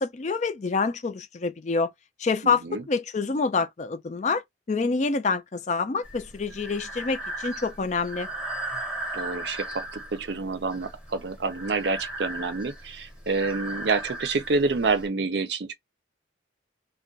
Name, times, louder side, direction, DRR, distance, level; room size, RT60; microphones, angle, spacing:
voice 1, 0.0-1.9 2.2-8.3, left 4 dB, 40° left, 0.4 m, -27 dB
voice 2, 2.4-2.8 9.1-15.7, right 4 dB, 65° right, 0.5 m, -28 dB
Breathing, 6.0-15.1, right 1 dB, 5° right, 0.8 m, -37 dB
2.3 x 2.2 x 3.8 m
head